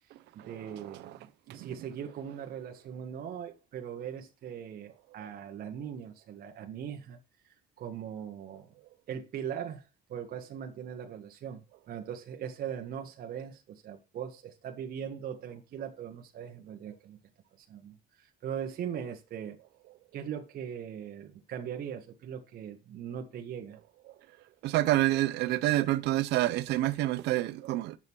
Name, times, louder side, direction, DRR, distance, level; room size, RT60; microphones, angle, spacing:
voice 1, 0.3-7.2 7.8-8.7 9.1-11.6 11.9-17.2 17.6-19.6 20.1-23.8, right 8 dB, 60° right, 1.5 m, -40 dB
voice 2, 24.6-28.0, right 16 dB, 85° right, 0.9 m, -27 dB
9.2 x 7.2 x 4.7 m
cardioid pair, 110°, 17 cm